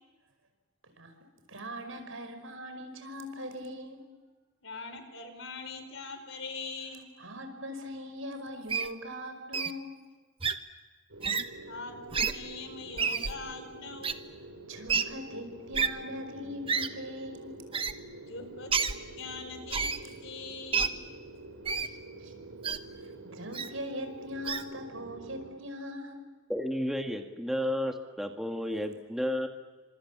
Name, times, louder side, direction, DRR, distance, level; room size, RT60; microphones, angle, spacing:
voice 1, 1.5-4.0 7.2-10.0 14.7-17.5 21.8-22.3 23.0-26.2, equal, 75° right, 7 dB, 5.4 m, -41 dB
voice 2, 4.6-7.1 11.7-14.2 18.3-21.0, left 4 dB, 65° left, 8 dB, 4.9 m, -42 dB
Wild animals, 8.7-8.9 9.5-9.7 10.4-10.5 11.2-11.4 12.1-12.3 13.0-13.3 14.0-14.1 14.9-15.0 15.7-15.9 16.7-16.9 17.7-17.9 18.7-18.9 19.7-20.0 20.7-20.9 21.7-21.9 22.6-22.8 23.5-23.7 24.5-24.6, right 6 dB, 25° right, 1.2 m, -28 dB
sound 1, 11.1-25.5, right 2 dB, 90° right, 6.6 m, -47 dB
voice 3, 26.5-29.5, equal, ahead, 4 dB, 1.9 m, -32 dB
29.5 x 26.5 x 7.5 m, 1.3 s
head